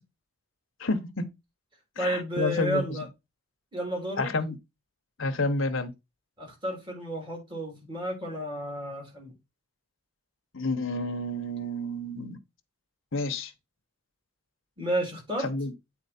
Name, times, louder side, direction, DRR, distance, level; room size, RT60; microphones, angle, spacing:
voice 1, 0.8-1.2 2.0-2.8 4.2-4.6 5.2-5.9 10.5-12.4 13.1-13.5 15.4-15.7, left 2 dB, 60° left, 1.0 m, -29 dB
voice 2, 2.0-3.1 3.7-4.3 6.4-9.3 14.8-15.5, right 1 dB, 20° right, 3.1 m, -32 dB
8.3 x 4.3 x 4.3 m
head